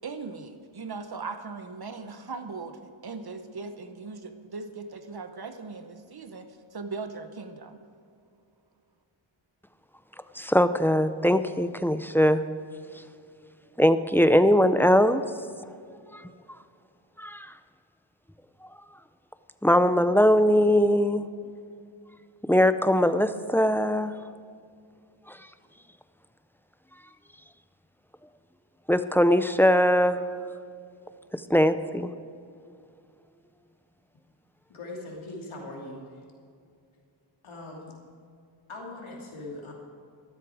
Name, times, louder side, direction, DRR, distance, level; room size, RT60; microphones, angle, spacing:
voice 1, 0.0-7.8, right 4 dB, 50° right, 8 dB, 1.0 m, -39 dB
voice 2, 10.4-12.4 13.8-15.2 16.1-16.2 17.2-17.5 19.6-21.3 22.5-24.2 25.3-25.4 28.9-30.2 31.5-32.1, equal, 5° left, 11 dB, 0.6 m, -21 dB
voice 3, 34.7-36.1 37.4-37.9 38.7-39.7, left 2 dB, 85° left, -2 dB, 2.8 m, -40 dB
14.0 x 12.5 x 4.9 m, 2.3 s
wide cardioid pair, 85°, 48 cm